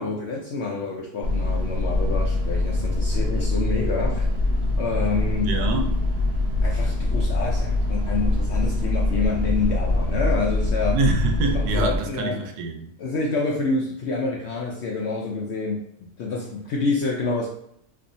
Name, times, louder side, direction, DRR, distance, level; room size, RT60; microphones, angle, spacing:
voice 1, 0.0-4.2 4.8-5.5 6.6-11.0 11.5-12.4 13.0-15.8 16.2-17.5, left 3 dB, 65° left, -2 dB, 0.7 m, -27 dB
sound 1, 1.2-12.0, left 2 dB, 55° right, 0.7 m, -23 dB
voice 2, 5.4-5.9 10.9-12.9, right 3 dB, 85° right, 4 dB, 1.2 m, -25 dB
4.3 x 2.6 x 2.6 m, 0.73 s
omnidirectional pair, 1.6 m